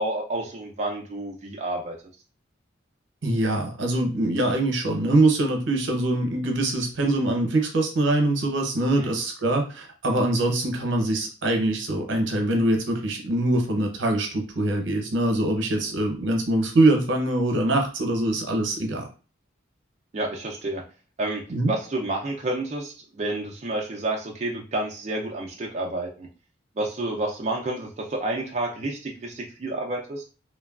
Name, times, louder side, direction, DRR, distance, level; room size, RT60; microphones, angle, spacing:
voice 1, 0.0-2.0 9.0-9.1 20.1-20.8 21.2-26.3 26.8-30.2, right 2 dB, 35° right, -1 dB, 0.4 m, -30 dB
voice 2, 3.2-19.1 21.5-21.7, right 2 dB, 75° right, 3 dB, 0.7 m, -23 dB
3.2 x 2.2 x 2.3 m, 0.35 s
head